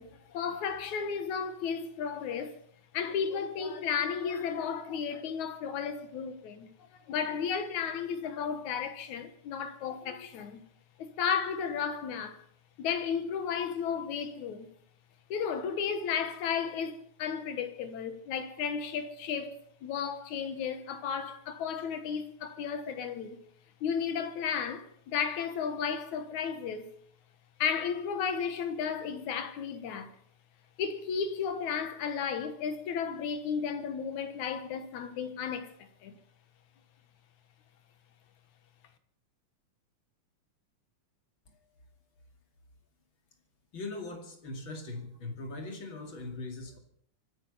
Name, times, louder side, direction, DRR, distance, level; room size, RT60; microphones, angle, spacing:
voice 1, 0.0-2.5 2.9-6.7 7.1-10.6 11.0-12.4 12.8-14.7 15.3-23.4 23.8-26.9 27.6-30.2 30.8-36.2, left 7 dB, 75° left, 2.7 m, -33 dB
voice 2, 43.7-46.8, left 2 dB, 40° left, 3.1 m, -40 dB
25.5 x 9.6 x 5.5 m
omnidirectional pair, 3.5 m